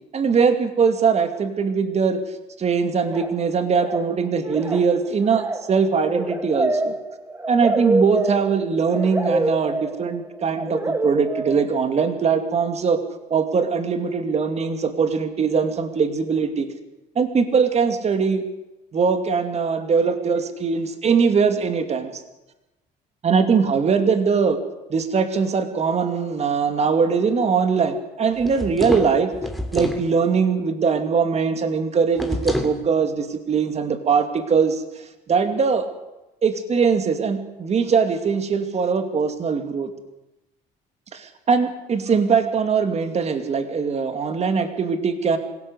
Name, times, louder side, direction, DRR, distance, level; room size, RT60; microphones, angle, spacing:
voice 1, 0.1-2.2 2.6-6.9 7.5-13.0 13.3-16.7 17.2-18.4 18.9-22.2 23.2-24.6 24.9-29.3 29.7-34.8 35.3-35.9 36.4-39.9 41.1-45.4, right 5 dB, 40° right, 8 dB, 2.6 m, -21 dB
sound 1, 3.0-3.4 3.7-4.2 4.4-12.0, right 2 dB, 15° right, 1.8 m, -26 dB
sound 2, 28.4-30.1 32.2-32.8, left 1 dB, ahead, 2.8 m, -28 dB
25.5 x 17.0 x 8.1 m, 0.98 s
cardioid pair, 110°, 17 cm